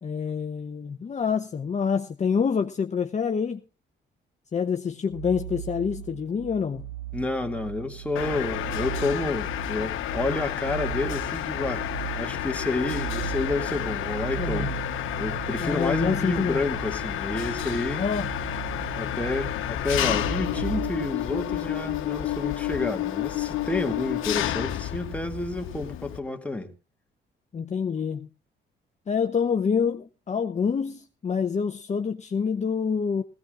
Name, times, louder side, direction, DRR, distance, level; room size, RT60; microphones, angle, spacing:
voice 1, 0.0-3.6 4.5-6.9 14.4-14.7 15.6-16.6 18.0-18.3 27.5-28.3 29.1-33.2, left 6 dB, 35° left, 0.8 m, -27 dB
sound 1, 5.1-21.1, right 13 dB, 80° right, 6.9 m, -37 dB
voice 2, 7.1-11.9 12.1-14.7 15.2-18.1 19.0-26.7, left 2 dB, 5° left, 2.3 m, -30 dB
Mechanisms, 8.2-26.2, left 12 dB, 85° left, 1.1 m, -30 dB
18.0 x 17.0 x 2.5 m
cardioid pair, 90°, 20 cm